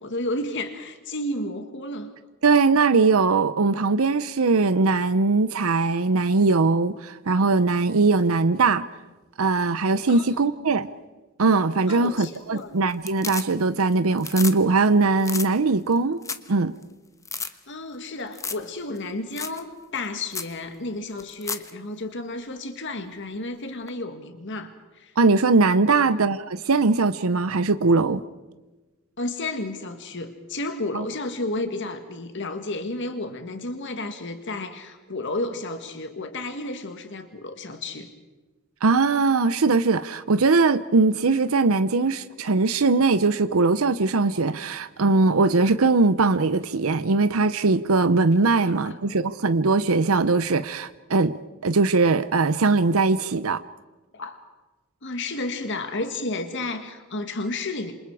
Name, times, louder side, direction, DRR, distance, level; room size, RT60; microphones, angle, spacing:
voice 1, 0.0-2.1 10.1-10.7 11.9-12.7 17.5-25.1 25.9-26.1 29.2-38.1 48.6-49.0 54.1-54.4 55.0-57.9, left 2 dB, 55° left, 1.9 m, -32 dB
voice 2, 2.4-8.9 9.4-10.9 11.4-16.2 16.5-16.7 25.2-28.2 30.9-31.0 38.8-51.3 51.6-53.6, right 3 dB, 75° right, 0.7 m, -20 dB
sound 1, 12.0-12.6 12.9-13.8 14.1-14.6 14.8-14.9 15.2-15.5 15.9-16.5 16.8-16.9 17.2-17.5 18.3-18.7 18.9-19.0 19.4-19.6 19.9-20.0 20.3-20.5 21.2-21.7 23.9-24.0, left 5 dB, 15° left, 1.1 m, -32 dB
27.5 x 27.0 x 4.9 m
head